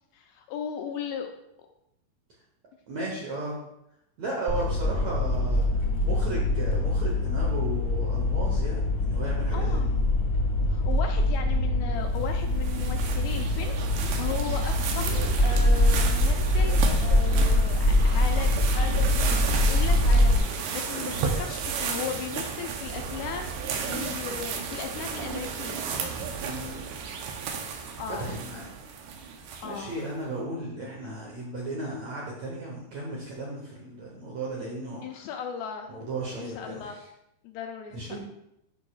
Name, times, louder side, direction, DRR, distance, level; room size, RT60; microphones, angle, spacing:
voice 1, 0.1-1.3 9.5-9.9 10.7-25.8 28.0-28.3 29.6-30.0 35.0-35.9 36.4-37.0 37.4-38.2, left 7 dB, 80° left, 4 dB, 2.3 m, -37 dB
voice 2, 2.9-3.5 4.2-5.7 6.0-9.9 26.4-26.8 28.1-28.7 29.6-35.3 35.9-37.1 37.9-38.2, right 2 dB, 70° right, -3 dB, 1.6 m, -35 dB
sound 1, 4.5-20.4, left 1 dB, 35° left, 1.2 m, -24 dB
sound 2, 12.2-29.9, right 6 dB, 90° right, 2.9 m, -33 dB
11.0 x 5.4 x 2.4 m, 0.81 s
omnidirectional pair, 4.6 m